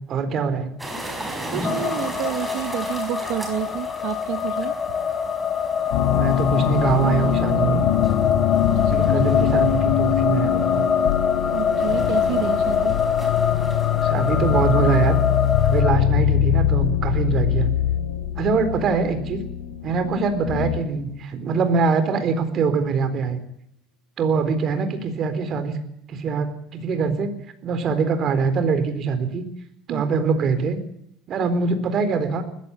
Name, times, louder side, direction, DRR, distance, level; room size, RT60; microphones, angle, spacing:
voice 1, 0.1-0.7 6.1-7.8 8.9-10.9 14.0-15.2 15.6-17.7 18.4-19.4 19.8-23.4 24.2-25.8 26.1-27.3 27.6-29.4 29.9-30.8 31.3-32.4, right 5 dB, 40° right, 9 dB, 4.1 m, -23 dB
sound 1, 0.8-15.8, right 1 dB, 5° right, 5.2 m, -37 dB
voice 2, 1.5-5.0 8.7-9.3 11.5-13.0 29.9-30.0, right 14 dB, 70° right, 10 dB, 1.2 m, -30 dB
sound 2, 1.6-15.9, left 6 dB, 30° left, 1.6 m, -24 dB
sound 3, 5.9-21.0, left 11 dB, 85° left, 3.9 m, -23 dB
20.0 x 15.5 x 10.0 m, 0.75 s
cardioid pair, 135°, 0 cm